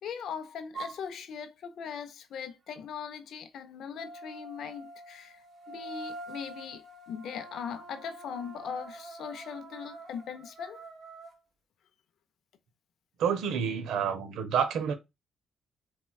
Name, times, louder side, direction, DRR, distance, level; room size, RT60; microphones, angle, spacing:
voice 1, 0.0-10.8, left 7 dB, 70° left, 0.5 m, -40 dB
sound 1, 0.7-1.0 3.9-11.3, right 2 dB, 50° right, 0.8 m, -45 dB
voice 2, 13.2-14.9, right 7 dB, 80° right, 0.6 m, -28 dB
4.2 x 2.2 x 2.3 m
cardioid pair, 90°, 0 cm